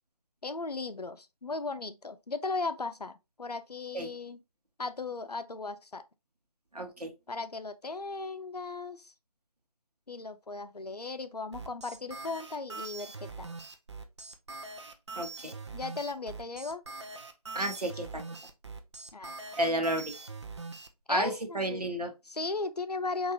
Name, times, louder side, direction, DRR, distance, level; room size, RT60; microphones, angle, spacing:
voice 1, 0.4-4.4 4.8-6.0 7.3-9.1 10.1-13.5 15.7-16.8 19.1-19.4 21.1-21.8 22.3-23.3, left 3 dB, 90° left, 0.6 m, -36 dB
voice 2, 6.7-7.1 15.1-15.6 17.5-18.2 19.6-20.1 21.1-22.1, right 1 dB, 85° right, 1.1 m, -31 dB
sound 1, 11.5-20.9, right 3 dB, 45° right, 0.6 m, -43 dB
4.7 x 2.6 x 2.8 m
figure-of-eight pair, 155°, 20 cm